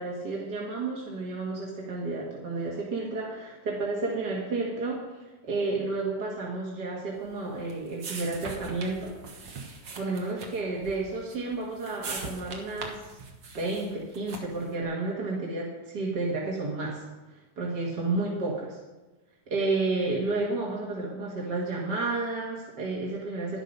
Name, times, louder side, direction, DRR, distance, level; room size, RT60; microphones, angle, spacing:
voice 1, 0.0-5.0 5.4-9.1 9.4-9.6 10.0-13.2 13.6-17.0 17.6-18.8 19.5-23.6, right 3 dB, 70° right, -4 dB, 2.6 m, -31 dB
sound 1, 7.2-14.7, right 3 dB, 90° right, 2.1 m, -42 dB
11.5 x 11.0 x 5.5 m, 1.1 s
omnidirectional pair, 1.9 m